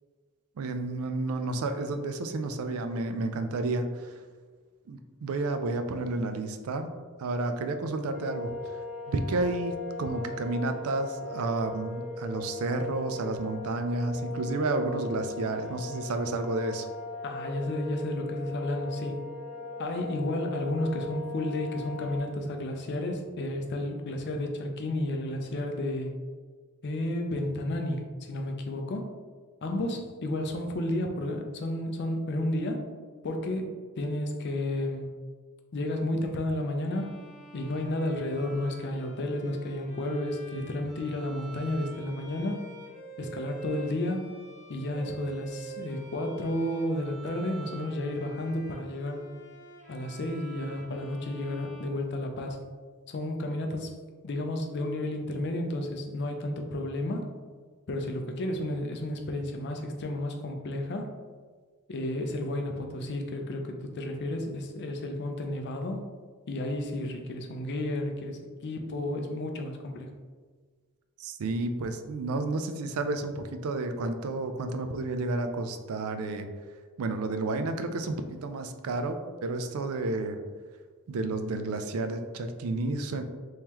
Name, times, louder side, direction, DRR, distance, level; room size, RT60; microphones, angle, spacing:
voice 1, 0.6-4.1 4.9-6.9 7.2-8.5 9.1-16.9 71.2-76.5 77.0-80.4 81.1-83.2, right 2 dB, 70° right, 7 dB, 0.4 m, -31 dB
sound 1, 8.1-22.2, left 2 dB, 5° right, 1.4 m, -39 dB
voice 2, 17.2-19.2 19.8-26.1 26.8-29.1 29.6-32.8 33.2-35.1 35.7-37.1 37.5-42.6 43.2-44.3 44.7-49.2 49.9-52.6 53.1-54.0 54.2-57.3 57.9-61.1 61.9-66.0 66.5-70.1, left 1 dB, 50° left, 4 dB, 0.5 m, -32 dB
Bowed string instrument, 36.8-52.7, right 3 dB, 35° left, 1.5 m, -47 dB
3.6 x 3.1 x 2.9 m, 1.5 s
head